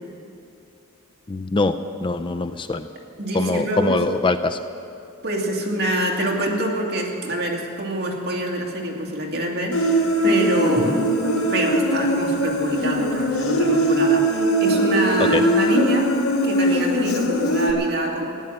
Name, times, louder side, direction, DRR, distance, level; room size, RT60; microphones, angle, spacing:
voice 1, 1.3-1.7 2.0-2.9 3.3-4.6 10.8-11.0 15.3-15.4, left 3 dB, 25° left, 10 dB, 0.4 m, -23 dB
voice 2, 3.2-4.0 5.2-10.0 10.2-16.2 16.4-18.3, right 1 dB, 50° right, -1 dB, 2.5 m, -25 dB
Human voice, 9.7-17.7, right 1 dB, 70° left, 1.7 m, -21 dB
15.5 x 10.5 x 8.9 m, 2.7 s
head